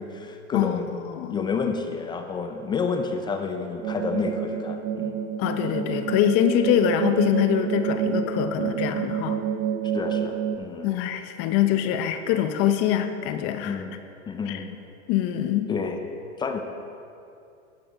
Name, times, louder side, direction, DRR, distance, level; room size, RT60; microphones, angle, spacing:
voice 1, 0.0-0.9 1.3-5.2 9.9-10.9 13.6-13.9 14.3-14.8 15.7-16.0 16.4-16.6, left 5 dB, 15° left, 5 dB, 0.3 m, -30 dB
voice 2, 0.5-1.4 5.4-9.4 10.8-13.8 14.5-14.6 15.1-15.7, left 10 dB, 40° left, 9 dB, 0.7 m, -24 dB
sound 1, 3.8-10.6, right 8 dB, 55° right, 0.7 m, -28 dB
11.5 x 5.7 x 5.2 m, 2.6 s
hypercardioid pair, 115°, 36 cm